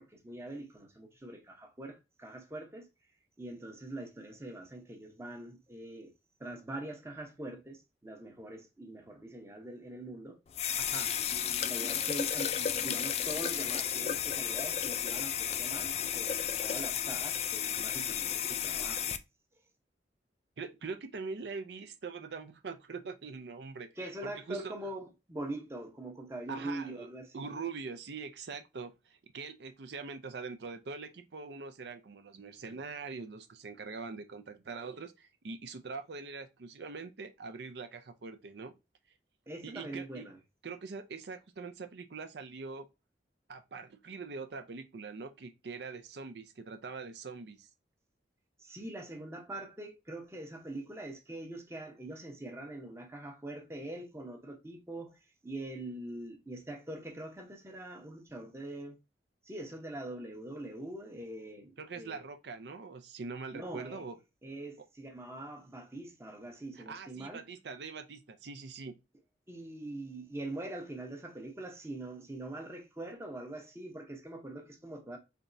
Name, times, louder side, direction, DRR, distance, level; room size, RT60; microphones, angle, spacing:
voice 1, 0.0-2.9 3.4-6.1 6.4-10.4 11.3-19.1 24.0-27.5 39.5-40.4 48.6-55.2 55.4-59.0 59.4-62.2 63.5-64.0 64.4-67.4 69.5-75.2, right 1 dB, 15° right, 0.8 m, -43 dB
sound 1, 10.5-19.2, left 9 dB, 35° left, 0.3 m, -33 dB
voice 2, 20.6-23.9 24.2-24.7 26.5-27.1 27.3-38.8 39.6-40.2 40.6-42.9 43.5-47.7 61.8-64.2 66.8-68.9, right 4 dB, 70° right, 0.5 m, -43 dB
4.0 x 3.4 x 2.6 m
head